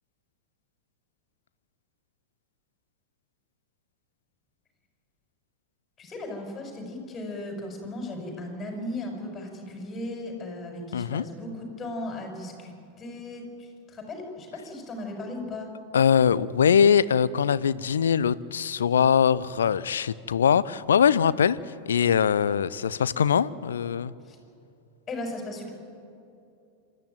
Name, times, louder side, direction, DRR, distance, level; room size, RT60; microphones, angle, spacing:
voice 1, 6.0-15.7 24.2-24.4 25.1-25.7, left 1 dB, 20° left, 2 dB, 5.9 m, -36 dB
voice 2, 10.9-11.2 15.9-21.6 21.9-24.1, left 7 dB, 65° left, 19 dB, 0.6 m, -22 dB
27.0 x 13.5 x 9.3 m, 2.6 s
figure-of-eight pair, 90°, 0 cm